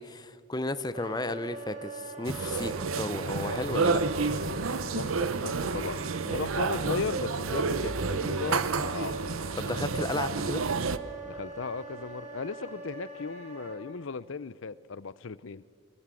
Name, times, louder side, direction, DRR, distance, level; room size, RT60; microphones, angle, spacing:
voice 1, 0.0-4.0 9.5-10.6, left 2 dB, 20° left, 12 dB, 0.7 m, -34 dB
Wind instrument woodwind instrument, 0.9-13.8, right 3 dB, 35° right, 4.4 m, -43 dB
sound 1, 2.2-11.0, right 4 dB, 75° right, 0.8 m, -30 dB
voice 2, 4.9-9.2 11.2-15.6, left 4 dB, 65° left, 19 dB, 0.6 m, -36 dB
23.5 x 20.5 x 7.6 m, 2.1 s
head